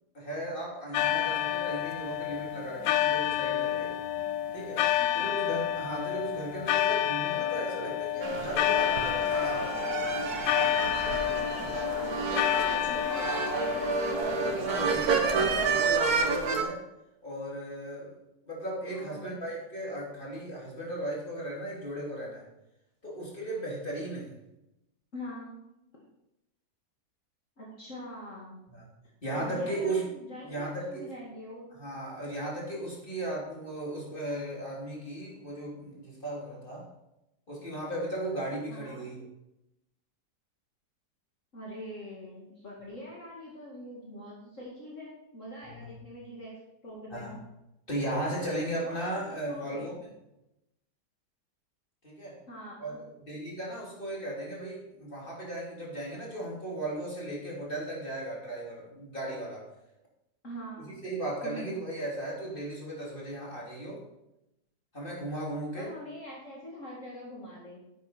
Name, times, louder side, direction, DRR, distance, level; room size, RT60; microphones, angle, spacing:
voice 1, 0.1-4.0 4.5-4.9 5.1-9.8 14.3-16.8 17.2-18.1 18.5-22.5 23.0-24.3 28.7-28.9 29.2-30.1 30.4-31.1 31.8-36.9 37.5-39.2 45.7-45.9 47.1-47.4 47.9-50.0 52.0-52.4 52.8-59.7 60.8-64.0 64.9-65.9, right 1 dB, 30° left, -4 dB, 3.4 m, -36 dB
sound 1, 0.9-14.8, left 11 dB, 85° left, 1.3 m, -29 dB
voice 2, 5.0-5.4 11.7-14.0 15.2-16.1 18.9-19.4 25.1-25.5 27.6-28.6 29.4-31.7 38.7-39.1 41.5-46.5 46.8-47.4 48.8-50.0 52.5-53.0 60.4-61.0 61.4-61.7 65.8-67.8, equal, 45° left, -5 dB, 2.6 m, -44 dB
sound 2, 8.2-16.6, right 4 dB, 60° right, 1.7 m, -30 dB
10.5 x 8.5 x 4.4 m, 0.88 s
omnidirectional pair, 1.9 m